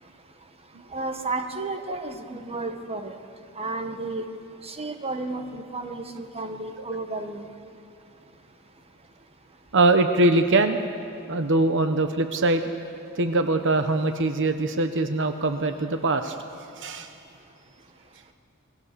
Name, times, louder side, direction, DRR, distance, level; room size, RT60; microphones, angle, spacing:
voice 1, 0.9-3.2 3.6-4.3 4.6-7.5, right 3 dB, 30° right, 6 dB, 1.5 m, -32 dB
voice 2, 9.7-10.8 11.3-12.6 13.2-16.4 16.8-17.1, right 2 dB, 60° right, 8 dB, 1.1 m, -22 dB
28.5 x 21.5 x 6.9 m, 2.7 s
head